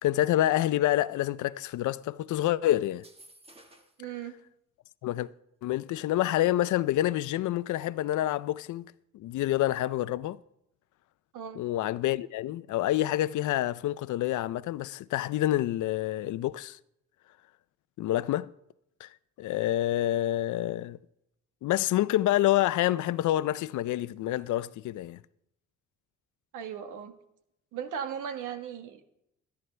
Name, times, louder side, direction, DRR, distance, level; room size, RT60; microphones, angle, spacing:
voice 1, 0.0-3.0 5.0-5.3 5.6-10.4 11.6-16.8 18.0-18.5 19.0-19.1 19.4-21.0 21.6-25.2, left 14 dB, 75° left, 0.6 m, -27 dB
sound 1, 2.9-4.1, right 1 dB, 20° right, 1.7 m, -55 dB
voice 2, 4.0-4.4 11.3-11.6 26.5-27.1 27.7-29.0, right 8 dB, 85° right, 1.5 m, -37 dB
24.0 x 11.0 x 3.3 m
cardioid pair, 90°, 30 cm